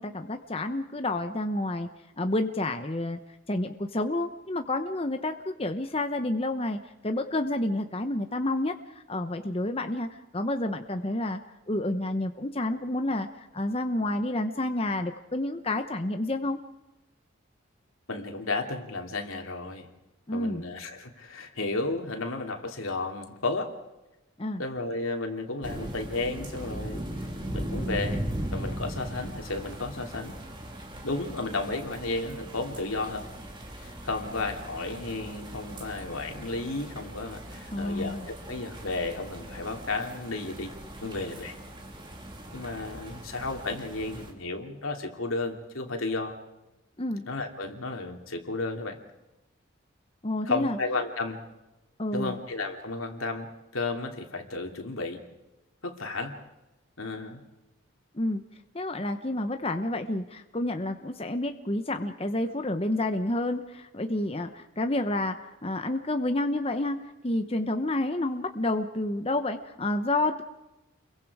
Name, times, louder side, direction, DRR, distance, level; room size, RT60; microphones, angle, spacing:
voice 1, 0.0-1.9 2.2-3.2 3.5-8.7 9.1-11.4 11.7-16.6 20.3-20.6 24.4-24.6 37.7-38.2 47.0-47.2 50.2-50.8 52.0-52.4 58.1-58.4 58.7-65.4 65.6-70.4, left 1 dB, 30° left, 6 dB, 0.9 m, -29 dB
voice 2, 18.1-19.9 20.3-23.7 24.6-27.0 27.5-28.3 28.5-30.4 31.0-33.2 33.8-40.7 41.0-41.6 42.5-46.4 47.3-49.0 50.5-51.4 52.1-55.2 55.8-56.4 57.0-57.4, left 3 dB, 90° left, 3 dB, 2.9 m, -33 dB
sound 1, 25.6-44.3, right 1 dB, 25° right, 2.7 m, -39 dB
29.0 x 23.0 x 4.9 m, 0.98 s
head